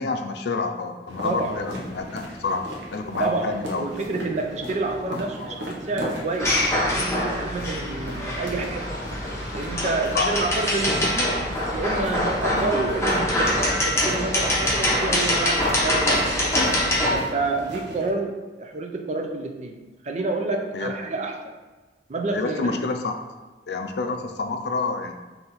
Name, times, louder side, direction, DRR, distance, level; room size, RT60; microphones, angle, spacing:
voice 1, 0.0-2.6 2.9-3.9 10.1-10.4 12.5-12.7 20.7-20.9 22.3-23.2 23.7-25.1, left 4 dB, 65° left, 5 dB, 0.4 m, -28 dB
sound 1, 1.1-18.1, equal, 85° right, 0.9 m, -38 dB
voice 2, 1.2-1.6 3.2-6.6 6.9-9.0 9.5-11.5 11.7-16.3 17.1-19.8 20.0-21.5 22.1-22.8, right 3 dB, 40° right, 3 dB, 0.5 m, -28 dB
sound 2, 6.4-17.2, left 1 dB, 15° left, 0.8 m, -24 dB
3.9 x 2.8 x 4.1 m, 1.2 s
head